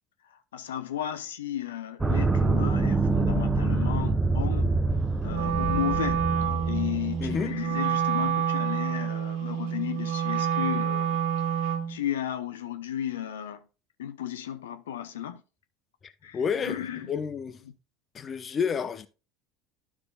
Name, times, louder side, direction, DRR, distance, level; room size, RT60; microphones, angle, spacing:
voice 1, 0.3-4.7 5.2-6.3 6.7-11.2 11.5-13.6 14.0-15.4 16.2-17.1, left 11 dB, 80° left, 0.6 m, -34 dB
sound 1, 2.0-7.5, right 3 dB, 15° right, 0.7 m, -26 dB
Wind instrument woodwind instrument, 5.3-12.0, right 8 dB, 65° right, 1.5 m, -28 dB
voice 2, 7.2-7.5 16.0-17.6 18.1-19.1, left 6 dB, 35° left, 0.7 m, -30 dB
12.0 x 6.0 x 2.3 m
hypercardioid pair, 75°, 0 cm